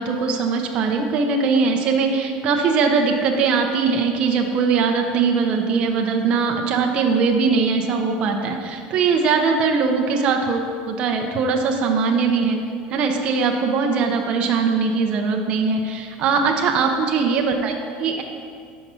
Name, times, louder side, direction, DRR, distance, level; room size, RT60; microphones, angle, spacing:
voice 1, 0.0-12.6 12.9-18.2, right 5 dB, 35° right, 2 dB, 0.5 m, -21 dB
5.7 x 5.4 x 6.0 m, 2.2 s
cardioid pair, 180°, 3 cm